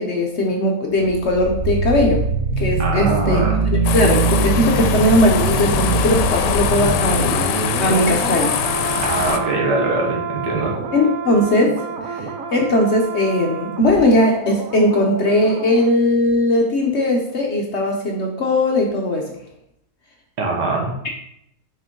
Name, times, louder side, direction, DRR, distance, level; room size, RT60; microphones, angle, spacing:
voice 1, 0.0-2.2 2.6-3.4 3.9-9.0 10.9-11.8 12.1-19.4, left 1 dB, 55° left, 1 dB, 0.8 m, -19 dB
sound 1, 0.9-15.9 16.2-16.3, right 4 dB, 65° right, 1.0 m, -24 dB
voice 2, 2.8-3.7 9.0-10.7 20.4-21.0, right 2 dB, 90° right, -1 dB, 1.9 m, -22 dB
sound 2, 3.8-9.4, left 8 dB, 85° left, 1.2 m, -22 dB
6.0 x 4.5 x 3.7 m, 0.79 s
omnidirectional pair, 1.8 m